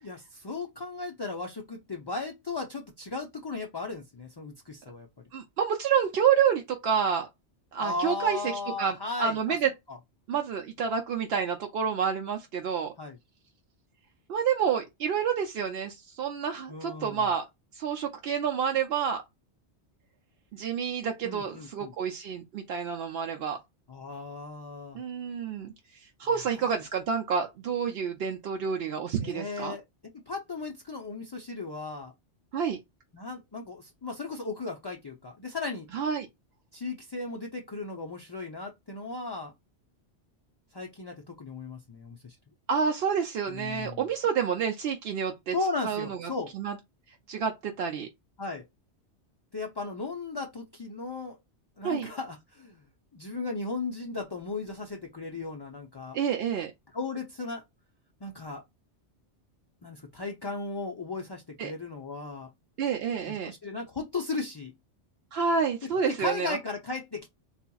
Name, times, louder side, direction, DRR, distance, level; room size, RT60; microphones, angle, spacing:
voice 1, 0.0-5.1 7.8-9.6 9.9-10.0 13.0-13.2 16.7-17.2 21.2-21.9 23.9-25.0 26.3-26.7 29.2-29.8 30.3-32.1 33.1-35.9 36.7-39.5 40.7-42.4 43.5-44.0 45.5-46.5 48.4-48.6 49.5-51.4 51.8-52.8 53.1-56.2 56.9-57.6 58.2-58.6 59.8-62.5 63.3-64.7 65.9-67.3, left 3 dB, 40° left, 0.3 m, -36 dB
voice 2, 5.3-7.3 7.7-8.4 8.8-9.7 10.3-12.9 14.3-17.5 17.7-19.2 20.5-23.6 24.9-25.7 26.0-29.8 32.5-32.8 35.9-36.3 42.7-45.5 45.8-46.8 47.3-48.1 51.8-52.1 56.1-56.7 61.6-61.7 62.8-63.5 65.3-66.6, right 7 dB, 65° right, 0.8 m, -29 dB
4.0 x 2.8 x 2.3 m
omnidirectional pair, 1.2 m